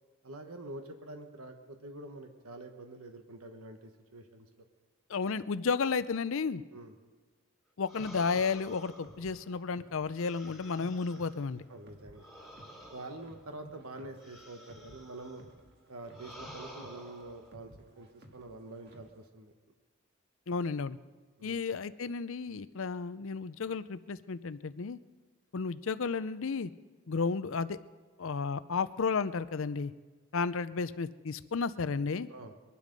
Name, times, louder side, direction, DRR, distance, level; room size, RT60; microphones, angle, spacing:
voice 1, 0.2-4.7 6.7-6.9 11.7-12.3 12.9-15.4 15.9-17.7 18.0-19.5 21.4-21.6 32.3-32.5, right 2 dB, 80° right, 5 dB, 1.3 m, -46 dB
voice 2, 5.1-6.6 7.8-11.6 20.5-21.0 21.4-25.0 25.5-26.7 27.1-27.8 28.2-29.9 30.3-32.3, left 5 dB, 65° left, 15 dB, 0.5 m, -32 dB
sound 1, 7.9-11.5 12.1-15.5 16.1-17.5, equal, ahead, 2.0 m, -52 dB
sound 2, 8.0-19.3, equal, 50° right, 1.8 m, -57 dB
22.5 x 11.5 x 5.3 m, 1.3 s
head